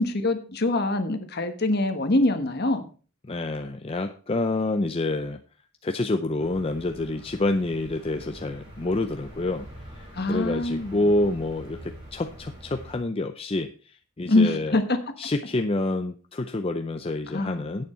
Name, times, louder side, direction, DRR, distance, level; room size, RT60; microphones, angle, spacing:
voice 1, 0.0-2.9 10.1-11.0 14.3-14.8 17.3-17.9, left 2 dB, 50° left, 8 dB, 1.3 m, -24 dB
voice 2, 3.2-5.4 5.8-9.7 9.9-14.8 15.2-17.9, left 2 dB, 25° left, 7 dB, 0.5 m, -28 dB
sound 1, 6.4-13.0, right 1 dB, 20° right, 7.0 m, -44 dB
10.5 x 8.8 x 4.3 m, 0.38 s
head